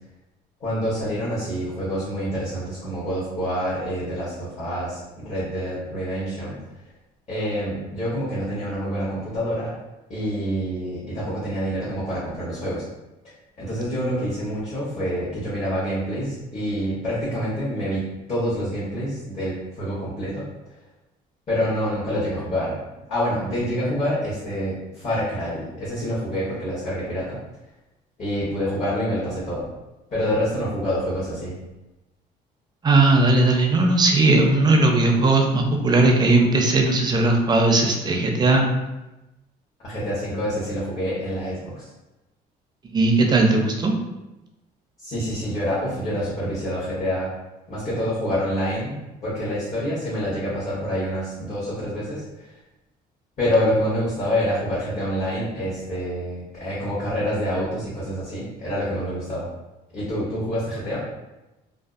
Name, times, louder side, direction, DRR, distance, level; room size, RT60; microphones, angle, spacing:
voice 1, 0.6-6.6 7.3-9.7 10.1-12.8 13.2-20.5 21.5-22.8 23.1-27.4 28.2-29.7 30.1-31.6 39.8-41.9 45.0-47.3 47.7-52.5 53.4-59.5 59.9-61.0, equal, 40° left, -9 dB, 0.9 m, -27 dB
voice 2, 32.8-38.7 42.8-43.9, right 2 dB, 25° right, 2 dB, 0.4 m, -18 dB
2.5 x 2.3 x 2.4 m, 1.0 s
cardioid pair, 110°, 17 cm